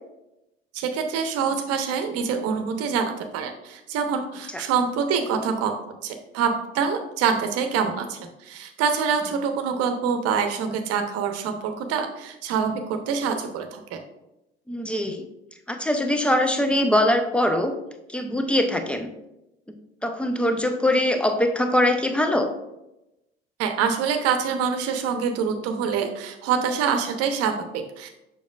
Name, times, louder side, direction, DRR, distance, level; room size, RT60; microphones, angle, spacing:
voice 1, 0.7-5.7 6.0-14.0 23.6-28.1, right 6 dB, 55° right, 6 dB, 1.0 m, -25 dB
voice 2, 14.7-15.3 15.7-17.7 18.1-19.1 19.7-22.5, left 1 dB, 5° left, 6 dB, 0.8 m, -22 dB
7.1 x 5.6 x 2.5 m, 0.91 s
figure-of-eight pair, 60°, 29 cm